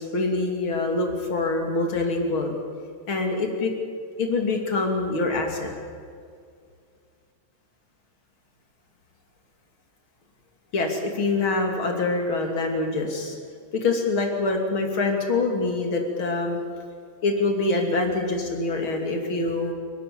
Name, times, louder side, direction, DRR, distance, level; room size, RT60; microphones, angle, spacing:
voice 1, 0.0-2.6 3.1-3.7 4.2-5.7 10.7-13.4 13.7-16.6 17.2-19.7, left 3 dB, 90° left, 3 dB, 3.7 m, -25 dB
28.5 x 13.0 x 8.6 m, 2.2 s
omnidirectional pair, 2.2 m